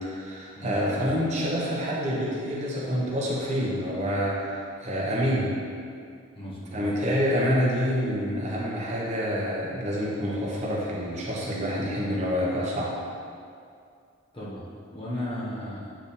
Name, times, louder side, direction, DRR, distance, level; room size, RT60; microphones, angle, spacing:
voice 1, 0.0-5.5 6.7-12.9, equal, 35° right, -5 dB, 1.1 m, -27 dB
voice 2, 0.6-1.1 6.3-6.9 14.3-14.7 14.9-16.0, left 1 dB, 25° left, -7 dB, 1.1 m, -35 dB
8.7 x 3.5 x 4.3 m, 2.3 s
head